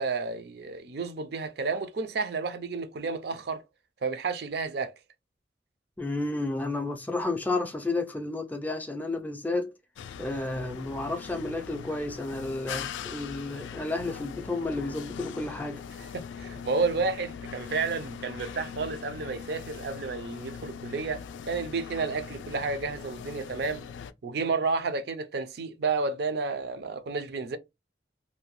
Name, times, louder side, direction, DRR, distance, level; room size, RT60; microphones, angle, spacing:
voice 1, 0.0-3.6 4.0-4.9 16.0-23.8 24.2-27.6, right 4 dB, 60° right, 0.4 m, -31 dB
voice 2, 6.0-9.7 10.2-15.8, left 2 dB, 10° left, 0.4 m, -31 dB
sound 1, 10.0-24.1, left 7 dB, 90° left, 0.3 m, -41 dB
2.7 x 2.1 x 3.0 m
head